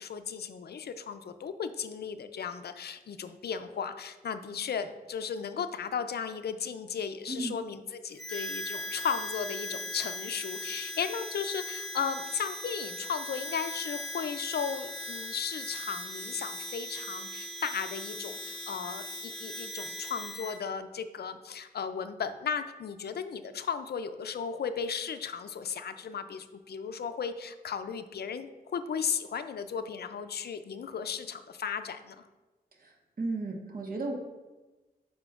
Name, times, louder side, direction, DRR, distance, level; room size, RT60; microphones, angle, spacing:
voice 1, 0.0-32.3, left 6 dB, 75° left, 10 dB, 0.4 m, -35 dB
voice 2, 7.3-7.6 32.8-32.9 33.2-34.1, right 2 dB, 60° right, 1 dB, 1.2 m, -34 dB
Harmonica, 8.2-20.6, left 1 dB, ahead, 1.2 m, -39 dB
8.9 x 5.0 x 2.4 m, 1.2 s
cardioid pair, 65°, 17 cm